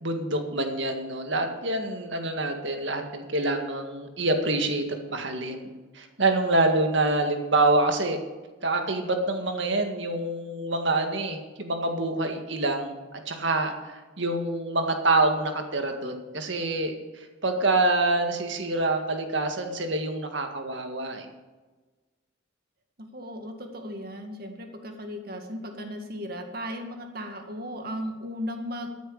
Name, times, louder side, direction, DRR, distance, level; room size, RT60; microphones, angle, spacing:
voice 1, 0.0-8.2 8.6-21.3, right 2 dB, 65° right, 5 dB, 1.9 m, -26 dB
voice 2, 23.1-28.9, equal, 45° right, 4 dB, 1.9 m, -36 dB
13.5 x 9.3 x 6.5 m, 1.3 s
head